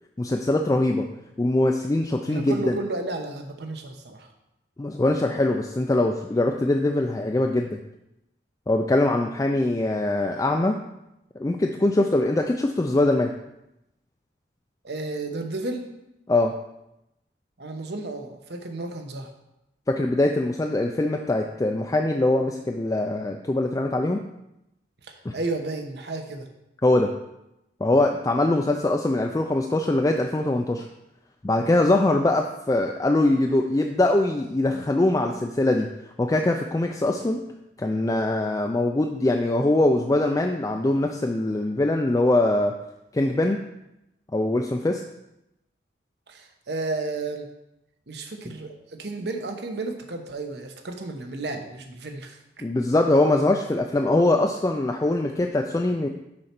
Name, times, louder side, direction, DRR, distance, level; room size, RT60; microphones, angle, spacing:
voice 1, 0.2-1.1 1.4-2.8 4.8-7.7 8.7-10.8 11.4-13.3 16.3-16.5 19.9-24.2 25.3-25.4 26.8-27.1 27.8-30.9 31.4-35.9 36.2-37.4 37.8-42.7 43.1-43.6 44.3-45.0 52.6-56.1, left 2 dB, 20° left, 3 dB, 0.3 m, -22 dB
voice 2, 2.3-4.3 14.8-15.8 17.6-19.3 25.0-26.5 46.3-47.5 48.1-52.4, right 2 dB, 65° right, 5 dB, 0.9 m, -32 dB
6.4 x 4.3 x 5.9 m, 0.87 s
head